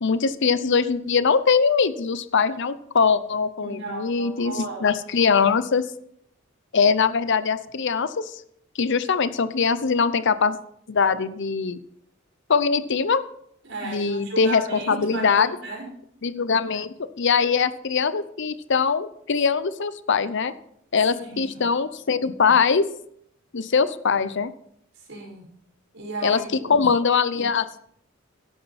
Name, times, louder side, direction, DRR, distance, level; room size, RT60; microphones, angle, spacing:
voice 1, 0.0-5.8 6.7-8.4 8.8-10.6 10.9-11.8 12.5-13.2 13.8-15.5 16.2-20.5 20.9-22.8 23.5-24.5 26.2-26.4 26.7-27.8, left 5 dB, 60° left, 14 dB, 0.7 m, -22 dB
voice 2, 3.6-4.9 13.6-15.9 21.1-21.6 25.1-25.5 25.9-26.9, right 2 dB, 65° right, -1 dB, 5.5 m, -34 dB
13.5 x 11.0 x 4.2 m, 0.68 s
head